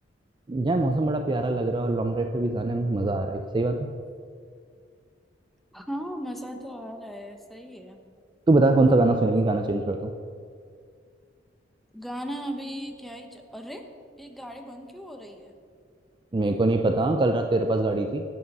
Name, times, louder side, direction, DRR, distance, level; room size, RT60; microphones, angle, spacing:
voice 1, 0.5-3.9 8.5-10.1 16.3-18.2, right 2 dB, 25° right, 5 dB, 0.4 m, -23 dB
voice 2, 5.7-8.0 11.9-13.9 14.2-15.5, equal, ahead, 4 dB, 0.8 m, -37 dB
9.3 x 8.5 x 5.3 m, 2.2 s
head